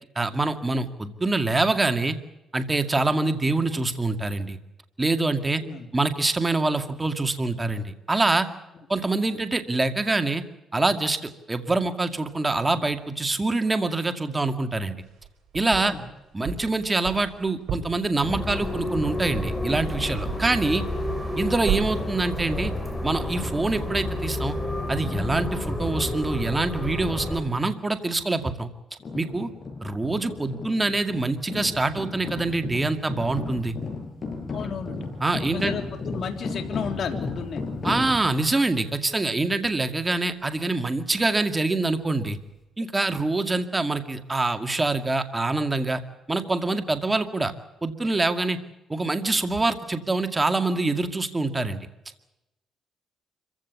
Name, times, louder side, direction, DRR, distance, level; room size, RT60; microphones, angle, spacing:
voice 1, 0.2-2.2 2.5-4.6 5.0-5.6 5.9-8.5 8.9-10.4 10.7-15.0 15.5-15.9 16.3-20.9 21.4-22.7 23.0-24.6 24.9-28.7 29.1-29.5 29.8-33.7 35.2-35.8 37.8-42.4 42.8-46.0 46.3-47.5 47.8-48.6 48.9-51.9, right 2 dB, 20° right, 8 dB, 2.1 m, -25 dB
voice 2, 5.5-5.9 15.8-16.0 34.5-35.1 35.4-37.6, left 6 dB, 55° left, 5 dB, 3.4 m, -33 dB
sound 1, 15.0-16.0 16.4-20.6 20.9-21.4 21.7-22.2, right 8 dB, 70° right, 7.8 m, -33 dB
sound 2, 18.2-27.4, left 1 dB, 10° left, 5.7 m, -30 dB
sound 3, 29.0-38.5, left 3 dB, 35° left, 7.7 m, -34 dB
25.5 x 16.0 x 8.4 m, 0.94 s
cardioid pair, 90°, 0 cm